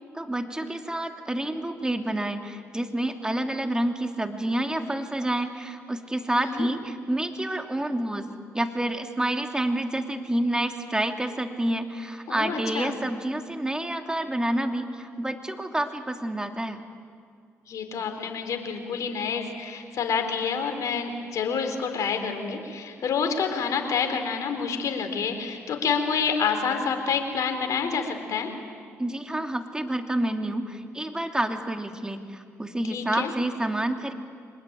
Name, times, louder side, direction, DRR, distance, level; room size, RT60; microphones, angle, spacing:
voice 1, 0.1-8.3 8.5-16.8 29.0-34.1, right 1 dB, 10° right, 5 dB, 2.8 m, -28 dB
voice 2, 12.3-12.9 17.7-28.5 32.9-33.3, left 6 dB, 65° left, 5 dB, 3.8 m, -28 dB
24.5 x 20.5 x 9.2 m, 2.1 s
hypercardioid pair, 50°, 6 cm